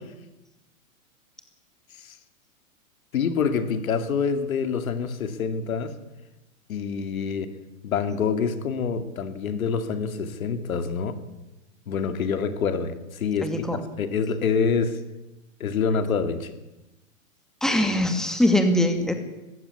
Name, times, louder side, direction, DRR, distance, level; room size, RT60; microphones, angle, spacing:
voice 1, 3.1-6.0 6.7-7.5 7.8-11.2 11.9-13.7 14.0-15.0 15.6-16.6, left 6 dB, 80° left, 10 dB, 2.5 m, -26 dB
voice 2, 13.4-13.8 17.6-19.1, left 1 dB, ahead, 6 dB, 2.4 m, -22 dB
19.5 x 15.5 x 9.6 m, 0.99 s
hypercardioid pair, 125°, 41 cm